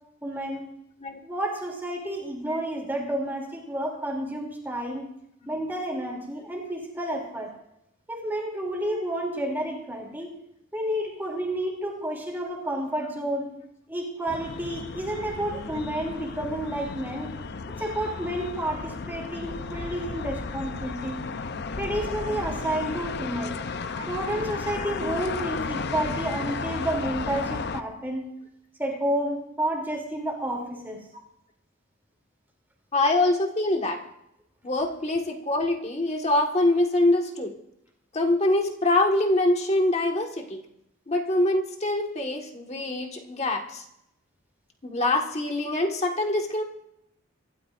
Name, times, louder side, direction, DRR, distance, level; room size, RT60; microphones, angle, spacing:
voice 1, 0.2-0.6 1.2-5.0 5.5-7.5 8.1-10.3 10.7-13.5 13.9-17.3 17.8-21.2 21.8-23.6 24.1-28.3 28.8-31.0, right 1 dB, 10° right, 0 dB, 2.9 m, -30 dB
sound 1, 14.3-27.8, left 4 dB, 55° left, 0.5 m, -34 dB
voice 2, 32.9-34.0 34.6-37.5 38.1-40.6 41.1-43.8 44.8-46.6, left 2 dB, 30° left, 3 dB, 1.6 m, -24 dB
26.0 x 13.0 x 2.5 m, 0.81 s
head